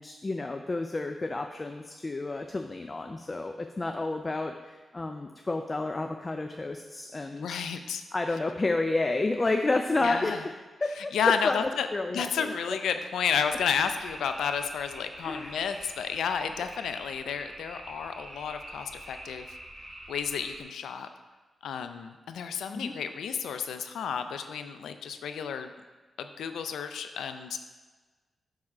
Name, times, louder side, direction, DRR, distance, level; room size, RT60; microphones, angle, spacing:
voice 1, 0.0-7.6 8.1-10.5 10.8-12.8 15.2-15.6 22.7-22.9, left 2 dB, 35° left, 5 dB, 0.5 m, -30 dB
voice 2, 7.3-8.0 10.0-10.4 11.0-19.5 20.1-21.1 21.6-25.7 26.2-27.6, left 7 dB, 90° left, 8 dB, 0.4 m, -31 dB
sound 1, 13.4-20.6, right 1 dB, 10° right, 2.5 m, -45 dB
8.9 x 3.7 x 5.4 m, 1.3 s
cardioid pair, 50°, 0 cm